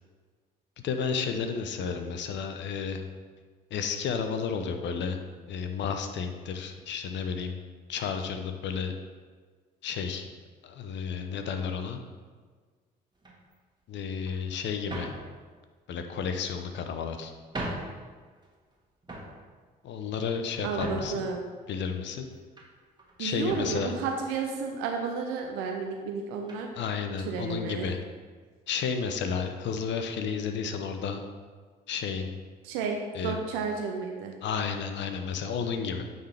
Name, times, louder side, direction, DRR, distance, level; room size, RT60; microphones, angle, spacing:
voice 1, 0.8-3.0 3.7-5.2 5.5-7.6 7.9-8.9 9.8-10.2 10.6-12.0 13.9-15.1 15.9-17.3 19.8-21.2 21.7-22.3 23.2-23.9 26.8-28.0 28.7-31.2 31.9-32.3 33.1-33.4 34.4-36.0, left 6 dB, 60° left, 7 dB, 0.7 m, -32 dB
sound 1, 13.2-13.5 14.3-14.4 14.9-15.3 16.2-16.8 17.3-17.4 17.5-18.0 18.4-18.7 19.0-19.4 20.0-21.3 21.8-22.7 23.0-23.2 23.4-23.8 24.6-24.7 25.0-25.2 26.5-26.7, right 1 dB, 20° right, 1.5 m, -39 dB
voice 2, 20.6-21.4 23.2-26.7 27.3-27.9 32.6-34.4, right 5 dB, 75° right, 2 dB, 0.6 m, -32 dB
8.8 x 3.9 x 3.4 m, 1.5 s
hypercardioid pair, 50°, 21 cm